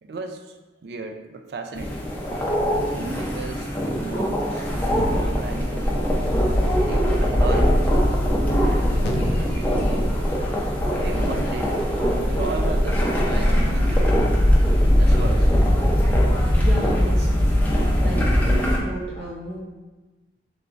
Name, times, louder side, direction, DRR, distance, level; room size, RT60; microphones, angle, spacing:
voice 1, 0.0-0.6 0.8-2.0 2.9-6.0 6.8-7.9 9.1-9.9 11.0-14.3 15.0-15.5, right 3 dB, 65° right, 5 dB, 0.3 m, -35 dB
sound 1, 1.8-18.8, equal, 10° left, 0.6 m, -21 dB
sound 2, 6.5-14.3, left 1 dB, 25° right, 1.3 m, -39 dB
sound 3, 9.0-9.5 9.8-10.2 10.5-11.0 11.3-11.7 12.1-12.4 12.8-13.0, left 2 dB, 65° left, 0.4 m, -34 dB
voice 2, 16.6-17.5 18.0-19.6, right 1 dB, 85° right, -7 dB, 0.8 m, -32 dB
3.4 x 3.4 x 3.8 m, 1.2 s
head